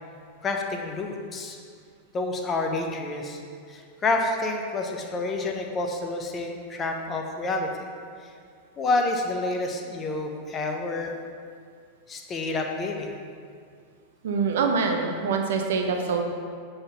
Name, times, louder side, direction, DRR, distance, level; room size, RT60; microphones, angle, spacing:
voice 1, 0.4-1.6 2.1-3.4 3.7-7.9 8.8-11.1 12.1-13.2, left 2 dB, 25° left, 2 dB, 0.9 m, -28 dB
voice 2, 14.2-16.2, right 5 dB, 60° right, 3 dB, 0.9 m, -25 dB
8.0 x 4.0 x 5.7 m, 2.2 s
figure-of-eight pair, 90°, 0 cm